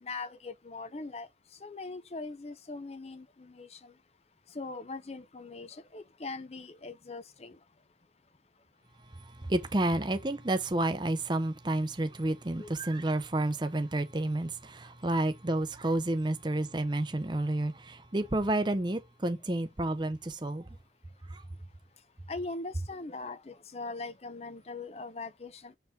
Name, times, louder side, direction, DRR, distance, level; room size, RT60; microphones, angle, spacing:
voice 1, 0.0-1.3 1.6-3.9 4.5-7.6 12.6-12.7 22.3-25.7, left 3 dB, 35° left, 0.6 m, -41 dB
voice 2, 9.1-20.7 21.3-21.4, right 1 dB, 25° right, 0.6 m, -30 dB
7.1 x 4.5 x 3.6 m
head